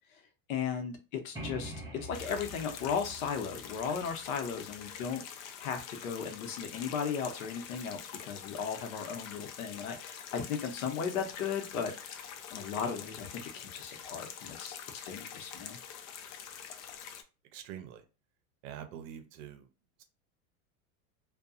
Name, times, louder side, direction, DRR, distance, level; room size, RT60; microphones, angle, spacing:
voice 1, 0.5-1.7 2.0-11.9 12.5-14.8 15.0-15.8, left 6 dB, 80° left, 0.8 m, -36 dB
sound 1, 1.3-5.0, right 1 dB, 10° right, 0.6 m, -45 dB
sound 2, 2.1-17.2, left 8 dB, 60° left, 0.5 m, -46 dB
voice 2, 17.5-18.0 18.6-19.7, right 9 dB, 60° right, 0.7 m, -45 dB
2.7 x 2.3 x 2.4 m
supercardioid pair, 150°, 41 cm